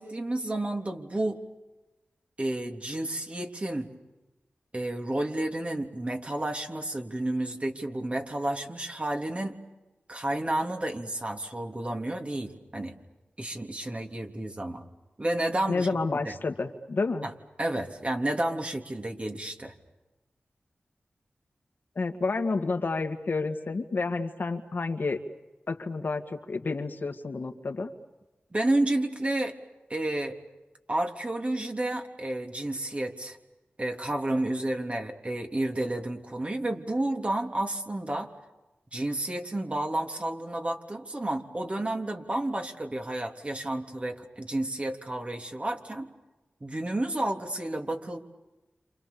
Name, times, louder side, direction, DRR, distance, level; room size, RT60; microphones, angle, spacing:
voice 1, 0.0-1.4 2.4-3.9 4.7-9.6 10.1-12.9 13.4-14.8 15.2-15.9 16.2-16.3 17.2-17.3 17.6-19.7 28.5-29.6 29.9-30.4 30.9-33.4 33.8-38.3 38.9-46.1 46.6-48.2, right 1 dB, 35° right, 3 dB, 3.5 m, -31 dB
voice 2, 15.7-17.3 22.0-25.2 25.7-27.9, left 3 dB, 65° left, 5 dB, 2.2 m, -30 dB
30.0 x 28.0 x 7.1 m, 1.1 s
cardioid pair, 55°, 4 cm